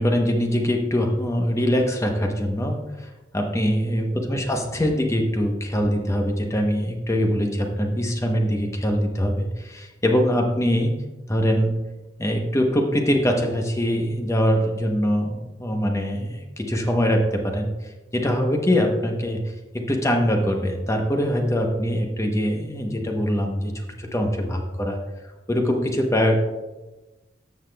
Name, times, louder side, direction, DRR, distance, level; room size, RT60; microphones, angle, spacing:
voice 1, 0.0-10.9 11.3-11.7 12.2-17.7 18.1-19.4 19.7-23.7 24.0-25.0 25.5-26.4, equal, 15° left, 3 dB, 0.9 m, -23 dB
14.0 x 5.8 x 2.3 m, 1.1 s
head